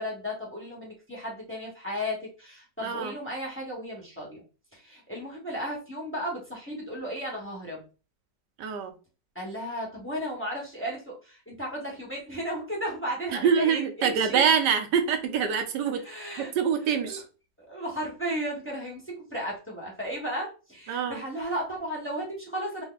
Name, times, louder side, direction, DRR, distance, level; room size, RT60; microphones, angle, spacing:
voice 1, 0.0-4.4 4.7-7.9 9.3-14.4 16.0-16.5 16.9-17.2 17.6-22.8, equal, 10° left, -4 dB, 0.8 m, -34 dB
voice 2, 2.8-3.1 8.6-8.9 13.3-16.0 16.4-17.2 20.9-21.2, right 7 dB, 70° right, 6 dB, 1.2 m, -25 dB
3.5 x 2.1 x 3.9 m, 0.33 s
omnidirectional pair, 2.0 m